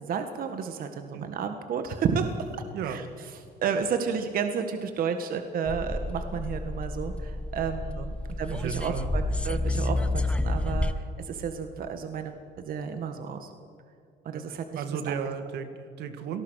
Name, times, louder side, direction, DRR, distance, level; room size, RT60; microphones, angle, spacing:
voice 1, 0.0-2.3 2.8-3.0 3.6-13.5 14.2-15.1, right 6 dB, 60° right, 7 dB, 1.7 m, -32 dB
voice 2, 2.7-3.0 8.0-8.1 8.5-9.1 14.3-16.4, right 7 dB, 75° right, 8 dB, 2.1 m, -35 dB
sound 1, 5.7-10.9, left 2 dB, 5° left, 1.0 m, -30 dB
27.0 x 19.0 x 6.5 m, 2.4 s
cardioid pair, 110°, 17 cm